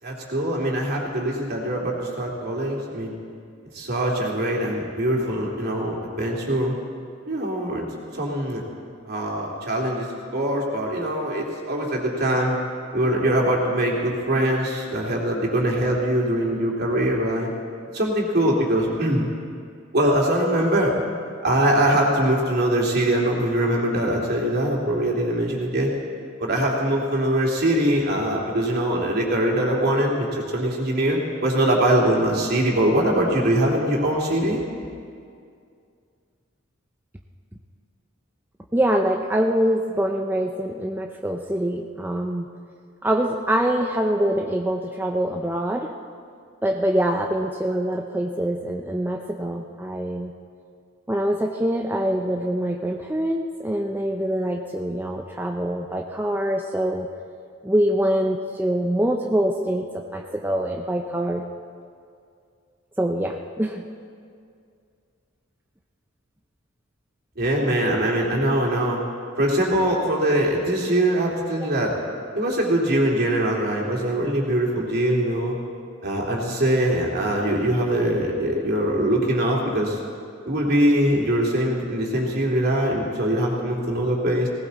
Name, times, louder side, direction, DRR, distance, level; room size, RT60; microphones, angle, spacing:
voice 1, 0.0-3.1 3.7-6.8 7.3-7.9 8.1-8.6 9.0-10.1 10.3-12.6 12.9-17.5 17.9-19.3 19.9-20.9 21.4-25.9 26.4-34.6 67.4-69.0 69.4-71.9 72.3-75.5 76.0-80.0 80.5-84.5, right 1 dB, 55° right, -2 dB, 3.0 m, -22 dB
voice 2, 38.7-42.5 43.0-45.9 46.6-50.3 51.1-57.1 57.6-61.4 63.0-63.8 71.5-71.7, right 1 dB, 10° right, 2 dB, 0.6 m, -24 dB
19.0 x 18.5 x 4.2 m, 2.3 s
head